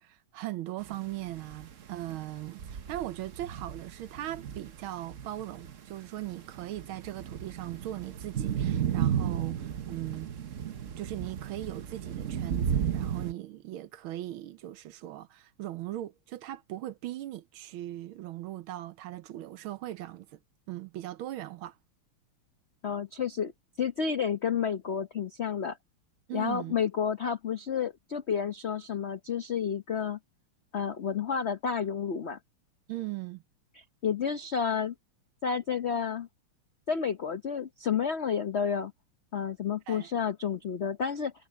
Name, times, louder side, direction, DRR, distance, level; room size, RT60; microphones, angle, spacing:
voice 1, 0.0-10.3 11.0-20.4 20.7-21.8 26.3-26.8 32.9-33.4 39.9-40.1, right 14 dB, 75° right, 1.5 m, -39 dB
sound 1, 0.9-13.3, right 9 dB, 50° right, 0.9 m, -34 dB
voice 2, 22.8-23.5 23.8-25.8 26.3-30.2 30.7-32.4 33.7-34.9 35.4-36.3 36.9-38.9 39.3-41.3, left 7 dB, 80° left, 0.6 m, -30 dB
omnidirectional pair, 2.4 m